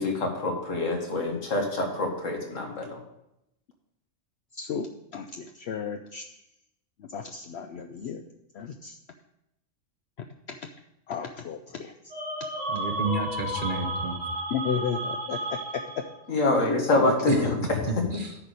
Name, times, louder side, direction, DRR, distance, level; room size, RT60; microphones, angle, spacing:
voice 1, 0.0-3.0 16.3-18.2, left 2 dB, 85° left, 2 dB, 1.9 m, -26 dB
voice 2, 4.5-6.3 7.0-8.2 8.5-9.0 10.2-10.7 11.1-11.9 14.5-16.0 16.9-17.3, left 7 dB, 65° left, 6 dB, 0.8 m, -34 dB
sound 1, 12.1-16.3, right 1 dB, 65° right, 2.3 m, -33 dB
voice 3, 12.7-14.2 17.3-18.3, right 3 dB, 45° right, 5 dB, 1.0 m, -31 dB
10.0 x 4.1 x 6.3 m, 0.84 s
omnidirectional pair, 1.3 m